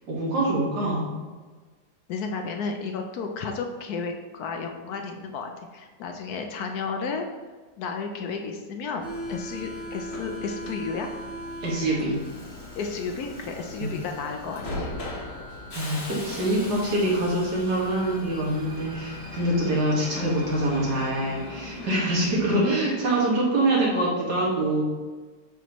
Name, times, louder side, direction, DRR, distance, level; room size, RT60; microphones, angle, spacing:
voice 1, 0.1-1.1 11.6-12.2 13.8-13.9 15.7-24.8, right 1 dB, 70° right, -5 dB, 2.3 m, -25 dB
voice 2, 2.1-7.3 7.8-11.1 12.8-14.9 21.9-22.3, left 5 dB, 70° left, 4 dB, 1.1 m, -33 dB
Subway metro underground, 9.0-23.3, left 1 dB, 40° left, 1.4 m, -38 dB
7.0 x 6.0 x 3.0 m, 1.4 s
omnidirectional pair, 1.8 m